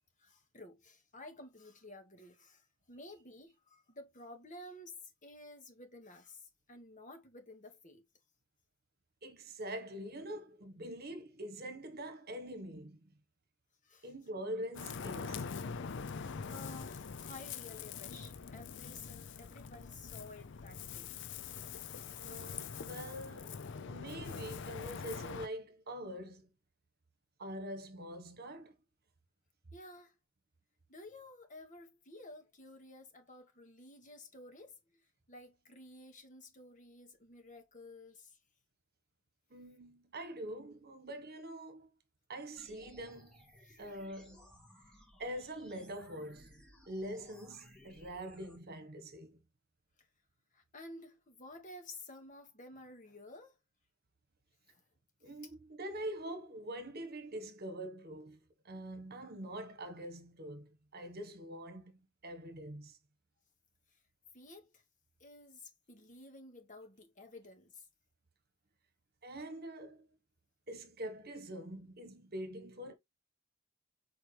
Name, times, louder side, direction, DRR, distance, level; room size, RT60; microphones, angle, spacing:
voice 1, 0.2-8.0 13.8-14.1 16.3-21.1 29.7-30.2 30.9-35.0 35.3-38.4 43.6-43.8 50.0-50.1 50.5-53.5 54.7-54.8 64.3-64.8 65.2-67.9, left 2 dB, 35° left, 1.8 m, -53 dB
voice 2, 9.2-13.1 14.0-15.5 22.2-26.5 27.4-28.7 39.5-41.9 42.3-43.4 43.8-44.5 45.2-46.6 46.9-49.4 55.2-58.4 58.6-61.9 62.2-63.0 69.2-70.1 70.7-72.9, right 1 dB, 45° right, 1.4 m, -44 dB
Ocean, 14.7-25.5, left 6 dB, 60° left, 0.5 m, -44 dB
sound 1, 42.6-48.6, equal, 5° left, 2.3 m, -60 dB
7.4 x 4.7 x 3.3 m
head